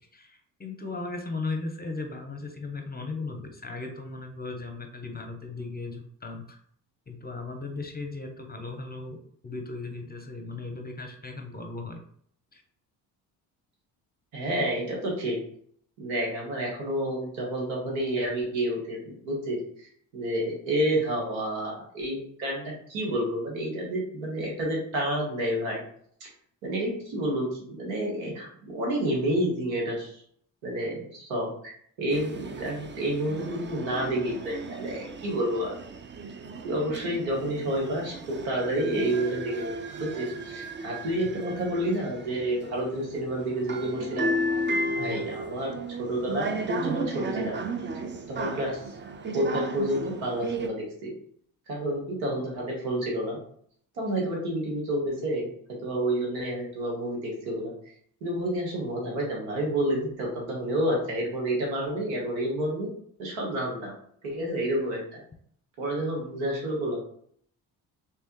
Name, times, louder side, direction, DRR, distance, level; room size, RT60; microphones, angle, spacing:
voice 1, 0.1-6.6 7.1-9.2 9.4-12.0 12.5-12.6 41.2-41.3 45.0-45.2, left 3 dB, 20° left, 5 dB, 0.8 m, -37 dB
voice 2, 14.3-15.4 16.0-19.9 20.1-25.8 26.6-30.2 30.6-31.7 32.0-35.7 36.6-39.7 40.0-44.3 45.0-47.6 48.3-48.8 49.3-51.1 51.7-53.4 54.0-55.5 55.8-57.7 58.2-62.9 63.2-63.9 64.2-65.2 65.8-67.0, right 1 dB, 90° right, -2 dB, 1.3 m, -29 dB
sound 1, 32.1-50.7, right 2 dB, 25° right, 0.5 m, -34 dB
3.3 x 3.3 x 3.0 m, 0.62 s
supercardioid pair, 55°, 44 cm